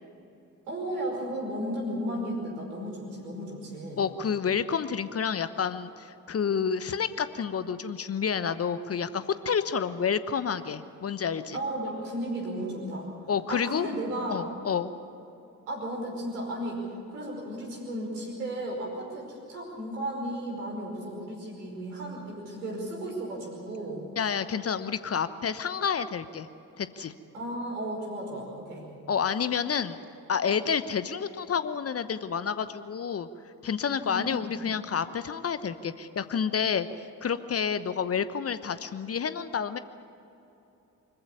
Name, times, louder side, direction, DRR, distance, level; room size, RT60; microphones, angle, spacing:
voice 1, 0.7-4.1 11.5-13.1 13.5-14.5 15.7-24.1 27.3-28.9 34.0-34.6, right 1 dB, 75° right, -1 dB, 5.3 m, -34 dB
voice 2, 4.0-11.6 13.3-13.9 14.3-14.9 24.2-26.5 26.8-27.1 29.1-30.0 30.3-33.3 33.6-39.8, left 7 dB, 30° left, 13 dB, 1.0 m, -29 dB
25.0 x 15.0 x 9.8 m, 2.8 s
figure-of-eight pair, 45°, 44 cm